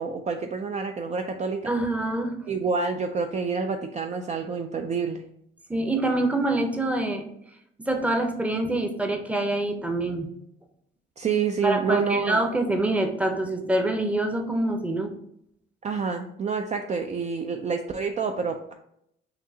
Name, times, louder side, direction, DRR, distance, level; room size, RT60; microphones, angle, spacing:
voice 1, 0.0-1.7 2.5-5.2 11.2-12.4 15.8-18.7, right 5 dB, 35° right, 4 dB, 0.4 m, -28 dB
voice 2, 1.7-2.5 5.7-7.2 7.8-10.3 11.6-15.1, right 2 dB, 5° right, 4 dB, 0.7 m, -25 dB
5.8 x 2.8 x 2.8 m, 0.74 s
cardioid pair, 90°, 20 cm